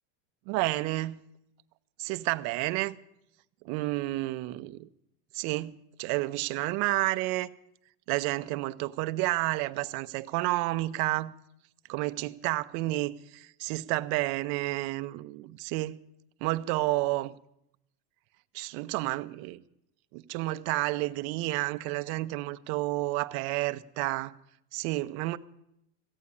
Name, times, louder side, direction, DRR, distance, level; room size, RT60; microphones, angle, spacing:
voice 1, 0.5-1.2 2.0-2.9 3.6-4.9 5.3-7.5 8.1-11.3 11.9-16.0 16.4-17.3 18.5-19.6 20.1-24.3 24.7-25.4, right 19 dB, 55° right, 0.7 m, -30 dB
15.5 x 8.4 x 9.9 m
supercardioid pair, 135°, 34 cm